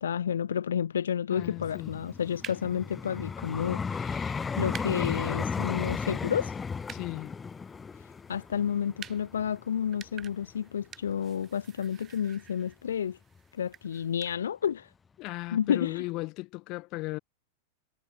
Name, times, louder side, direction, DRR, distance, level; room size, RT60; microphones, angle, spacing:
voice 1, 0.0-6.6 8.0-13.2 13.5-14.9 15.5-16.0, left 8 dB, 65° left, 0.4 m, -31 dB
voice 2, 1.3-1.9 6.9-7.3 15.2-17.2, left 22 dB, 40° left, 1.4 m, -36 dB
Vehicle, 1.4-10.5 11.1-11.3, left 5 dB, 15° left, 0.8 m, -35 dB
sound 1, 1.8-14.4, right 9 dB, 25° right, 4.3 m, -51 dB
figure-of-eight pair, 90°, 0 cm